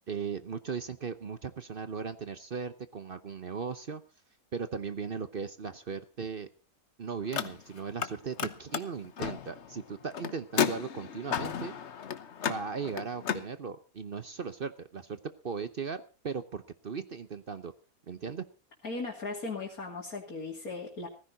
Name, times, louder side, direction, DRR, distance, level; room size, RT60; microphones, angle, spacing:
voice 1, 0.1-4.0 4.5-6.5 7.0-11.8 12.5-15.2 15.4-17.7 18.1-18.4, right 5 dB, 45° right, 12 dB, 0.9 m, -37 dB
Car, 7.2-8.1 8.4-13.5, left 8 dB, 55° left, 1.2 m, -34 dB
voice 2, 18.8-21.1, left 3 dB, 90° left, -2 dB, 3.2 m, -37 dB
17.0 x 15.0 x 4.0 m, 0.34 s
omnidirectional pair, 1.5 m